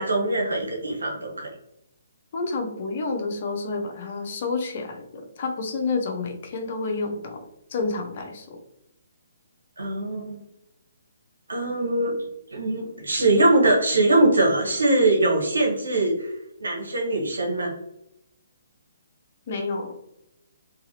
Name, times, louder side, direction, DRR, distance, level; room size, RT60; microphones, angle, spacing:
voice 1, 0.0-1.5 9.8-10.4 11.5-12.2 12.5-16.3 16.6-17.7, right 2 dB, 85° right, 0 dB, 0.9 m, -22 dB
voice 2, 2.3-8.6 19.5-20.0, left 3 dB, 45° left, 3 dB, 0.6 m, -29 dB
2.6 x 2.4 x 2.8 m, 0.83 s
hypercardioid pair, 145°, 0 cm